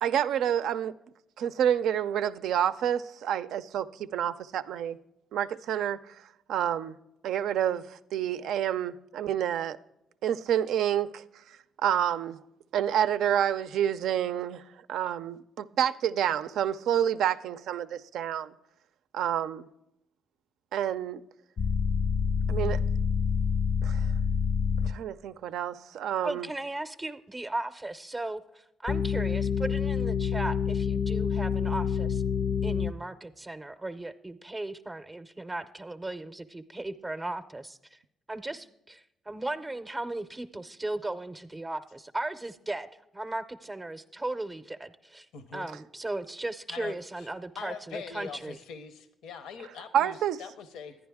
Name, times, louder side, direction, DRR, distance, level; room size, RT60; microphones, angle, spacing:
voice 1, 0.0-0.9 1.4-5.0 5.3-6.0 6.5-6.9 7.2-9.8 10.2-12.4 12.7-14.6 14.9-18.5 19.1-19.7 20.7-21.2 22.5-22.8 23.8-24.1 24.8-26.5 49.9-50.4, right 10 dB, 80° right, 13 dB, 0.4 m, -28 dB
sound 1, 21.6-24.9 28.9-32.9, left 6 dB, 45° left, 0.3 m, -27 dB
voice 2, 26.2-32.2 32.6-38.0 38.3-45.3 45.5-48.6, right 2 dB, 20° right, 9 dB, 0.5 m, -36 dB
voice 3, 45.3-45.7 46.7-47.3 47.6-50.9, left 6 dB, 85° left, 10 dB, 0.7 m, -42 dB
11.0 x 9.5 x 3.5 m, 0.86 s
cardioid pair, 90°, 0 cm